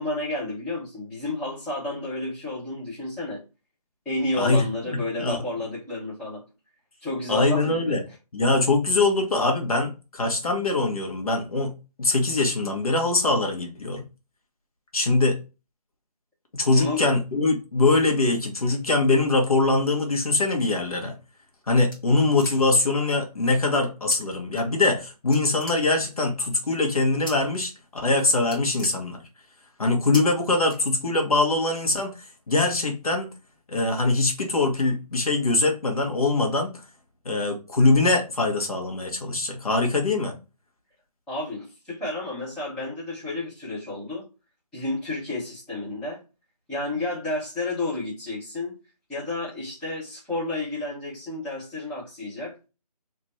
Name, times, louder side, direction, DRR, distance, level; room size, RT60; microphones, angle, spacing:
voice 1, 0.0-3.4 4.0-6.4 7.0-7.9 16.7-17.0 41.3-44.2 44.7-46.2 46.7-48.7 49.1-52.7, left 2 dB, 5° left, 1.1 m, -31 dB
voice 2, 4.3-5.4 7.3-8.0 8.3-11.7 12.0-14.0 14.9-15.4 16.5-21.2 21.7-29.2 29.8-33.3 33.7-36.7 37.3-40.3, left 2 dB, 60° left, 1.6 m, -23 dB
sound 1, 21.2-22.9 24.1-24.2 24.5-25.0 25.3-26.3 27.3-27.7 28.0-28.1 28.4-29.6 30.1-30.2 30.7-31.3, equal, 35° left, 1.7 m, -39 dB
3.2 x 3.2 x 4.2 m
figure-of-eight pair, 165°, 20 cm